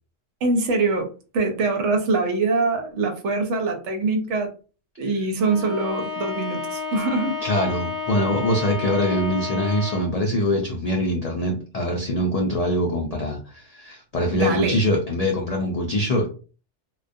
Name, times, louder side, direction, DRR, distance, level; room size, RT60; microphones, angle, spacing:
voice 1, 0.4-4.5 5.0-7.4 14.3-14.8, right 3 dB, 75° right, 4 dB, 0.9 m, -23 dB
Bowed string instrument, 5.4-10.2, left 4 dB, 45° left, 0.7 m, -31 dB
voice 2, 7.4-16.3, left 1 dB, 85° left, 0 dB, 0.3 m, -23 dB
2.2 x 2.2 x 2.5 m, 0.36 s
omnidirectional pair, 1.2 m